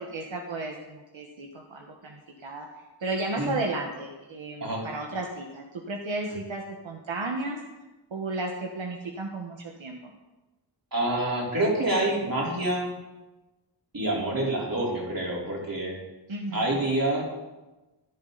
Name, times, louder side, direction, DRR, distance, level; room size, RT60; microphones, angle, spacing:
voice 1, 0.0-2.7 3.0-7.6 8.1-10.0 16.3-16.9, right 2 dB, 80° right, 1 dB, 1.3 m, -33 dB
voice 2, 10.9-12.9 13.9-16.0 16.5-17.2, right 1 dB, 50° right, -4 dB, 3.9 m, -27 dB
14.5 x 11.0 x 4.0 m, 1.1 s
wide cardioid pair, 95°, 45 cm